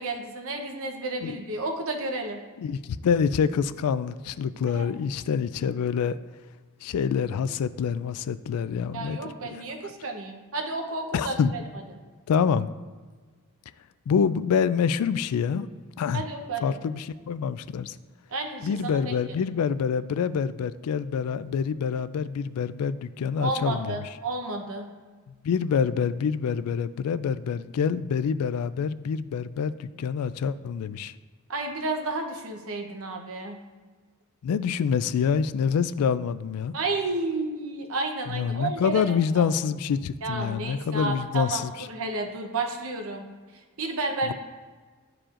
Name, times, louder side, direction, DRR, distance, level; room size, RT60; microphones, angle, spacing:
voice 1, 0.0-2.4 4.7-4.9 8.9-11.6 16.1-16.7 18.3-19.4 23.4-24.9 31.5-33.6 36.7-39.0 39.3-39.4 40.2-43.2 43.8-44.3, right 3 dB, 65° right, 4 dB, 0.9 m, -31 dB
voice 2, 2.6-6.2 6.8-9.5 11.1-11.5 12.3-12.7 14.1-15.7 16.0-16.2 16.6-18.0 18.6-24.0 25.4-31.1 34.4-36.7 38.3-41.7 44.2-44.3, left 6 dB, 85° left, 16 dB, 0.3 m, -26 dB
10.5 x 4.8 x 2.5 m, 1.4 s
head